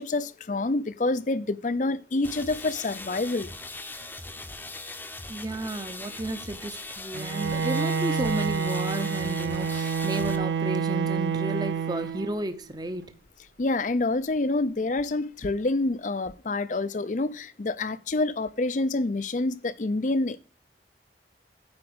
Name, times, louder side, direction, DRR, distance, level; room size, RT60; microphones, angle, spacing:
voice 1, 0.0-3.5 13.6-20.4, left 2 dB, 45° left, 0.5 m, -27 dB
sound 1, 2.2-10.4, left 2 dB, 10° left, 0.8 m, -40 dB
voice 2, 5.3-13.1, right 1 dB, 25° right, 0.8 m, -32 dB
Bowed string instrument, 7.1-12.5, right 5 dB, 75° right, 0.5 m, -28 dB
9.6 x 4.8 x 7.9 m
head